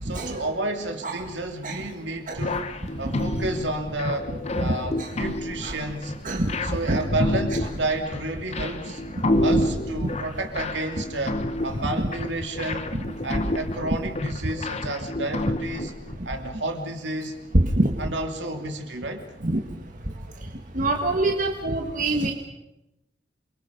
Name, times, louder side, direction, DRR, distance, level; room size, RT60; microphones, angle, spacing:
voice 1, 0.0-2.7 3.0-4.3 4.5-6.1 6.6-9.0 9.4-12.9 13.2-15.9 16.2-17.4 18.0-19.3, right 2 dB, 65° right, 4 dB, 3.0 m, -31 dB
sound 1, 2.4-16.2, left 1 dB, 35° left, 1.1 m, -29 dB
voice 2, 6.2-6.6 6.9-7.0 9.3-9.7 12.9-13.0 17.5-17.9 19.4-19.6 20.7-22.3, right 1 dB, 45° right, 2 dB, 1.8 m, -24 dB
28.0 x 23.5 x 5.4 m, 0.93 s
head